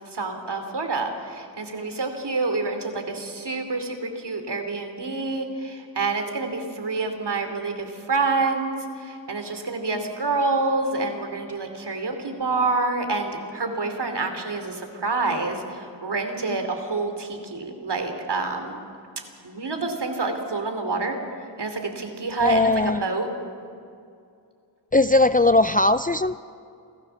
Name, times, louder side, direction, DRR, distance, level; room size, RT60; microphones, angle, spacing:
voice 1, 0.1-8.7 9.0-15.6 16.0-18.8 19.4-21.2 21.6-23.3, right 3 dB, 60° right, 5 dB, 2.9 m, -27 dB
voice 2, 22.4-23.0 24.9-26.4, left 2 dB, 20° left, 12 dB, 0.4 m, -19 dB
27.5 x 14.5 x 7.0 m, 2.4 s
wide cardioid pair, 65°, 46 cm